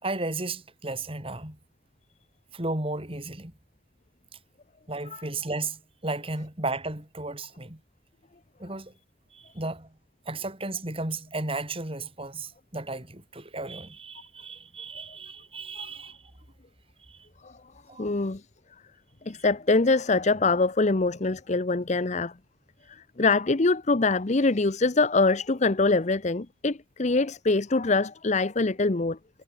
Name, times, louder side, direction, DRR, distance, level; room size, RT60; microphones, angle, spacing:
voice 1, 0.0-1.6 2.5-3.5 4.9-7.8 8.6-8.9 9.3-9.9 10.3-16.2 17.1-17.2 17.9-18.1, right 2 dB, 30° right, 4.4 m, -34 dB
voice 2, 18.0-18.4 19.3-22.3 23.2-29.2, left 3 dB, 40° left, 0.8 m, -24 dB
head